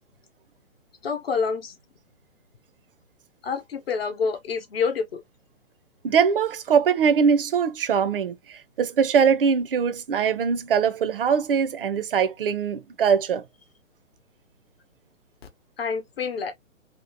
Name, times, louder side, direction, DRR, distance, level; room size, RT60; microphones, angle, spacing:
voice 1, 1.0-1.8 3.4-5.2 15.8-16.5, left 5 dB, 45° left, 0.9 m, -27 dB
voice 2, 6.0-13.4, right 6 dB, 45° right, 0.5 m, -22 dB
2.8 x 2.4 x 2.7 m
figure-of-eight pair, 130°, 41 cm